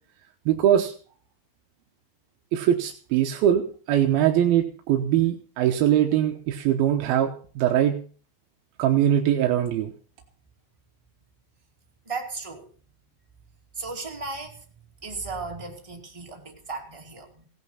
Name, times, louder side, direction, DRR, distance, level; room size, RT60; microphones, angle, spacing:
voice 1, 0.5-0.9 2.5-8.0 8.8-9.9, right 11 dB, 70° right, 4 dB, 2.4 m, -22 dB
voice 2, 12.0-12.7 13.7-14.6 15.0-17.4, right 3 dB, 15° right, 0 dB, 1.3 m, -35 dB
17.5 x 11.0 x 5.7 m, 0.41 s
omnidirectional pair, 5.6 m